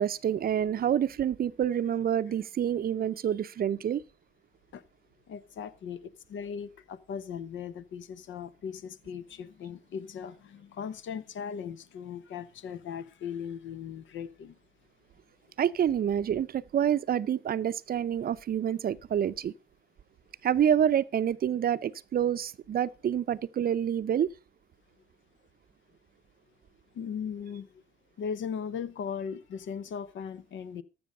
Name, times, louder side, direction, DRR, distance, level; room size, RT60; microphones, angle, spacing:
voice 1, 0.0-4.0 15.6-19.5 20.4-24.3, right 9 dB, 50° right, 0.6 m, -27 dB
voice 2, 5.3-14.6 26.9-27.7 28.2-30.8, left 7 dB, 70° left, 0.9 m, -38 dB
14.0 x 6.2 x 5.2 m
cardioid pair, 90°, 20 cm